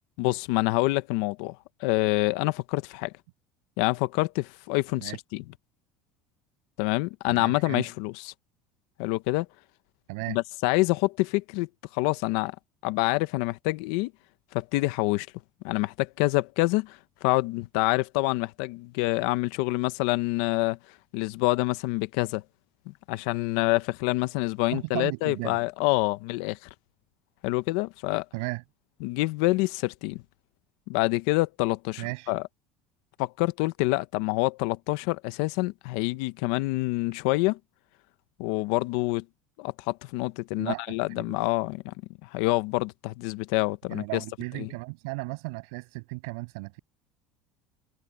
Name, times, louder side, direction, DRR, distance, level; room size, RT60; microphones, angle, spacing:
voice 1, 0.2-3.1 3.8-5.4 6.8-8.1 9.0-9.5 10.3-12.5 12.8-14.1 14.5-15.3 15.6-20.8 21.1-22.4 22.9-26.6 27.4-28.2 29.0-30.2 30.9-32.4 33.2-37.6 38.4-39.2 39.6-41.9 42.2-44.2 44.6-44.7, left 21 dB, 75° left, 0.9 m, -27 dB
voice 2, 7.3-7.8 10.1-10.4 24.7-25.6 28.3-28.6 32.0-32.3 40.5-41.4 43.9-46.8, right 29 dB, 80° right, 7.2 m, -35 dB
cardioid pair, 135°, 3 cm